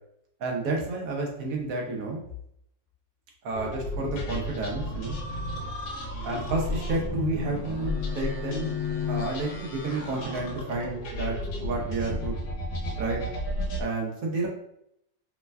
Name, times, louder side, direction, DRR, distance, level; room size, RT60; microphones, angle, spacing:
voice 1, 0.4-2.2 3.4-5.2 6.2-8.7 9.1-12.4 13.0-13.2 13.8-14.5, right 3 dB, 65° right, -1 dB, 0.9 m, -30 dB
sound 1, 3.5-13.8, left 2 dB, 80° left, 1.3 m, -33 dB
3.3 x 2.1 x 2.2 m, 0.73 s
omnidirectional pair, 2.0 m